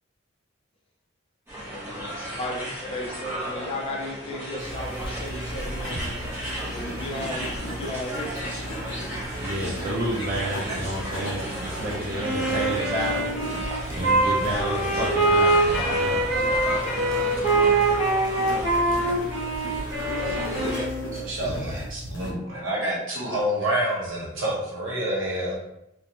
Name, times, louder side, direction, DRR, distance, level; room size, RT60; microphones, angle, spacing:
sound 1, 1.5-20.9, equal, 10° right, 0.8 m, -34 dB
voice 1, 1.6-8.3 16.8-18.0, left 1 dB, 30° left, -1 dB, 0.5 m, -36 dB
sound 2, 4.6-22.3, equal, 75° left, 0.6 m, -36 dB
voice 2, 9.4-16.2, right 1 dB, 45° right, -5 dB, 0.4 m, -30 dB
Wind instrument woodwind instrument, 12.2-21.2, right 2 dB, 30° right, 1.3 m, -24 dB
voice 3, 21.0-25.7, right 1 dB, 70° right, -4 dB, 0.9 m, -28 dB
2.4 x 2.2 x 2.9 m, 0.85 s
head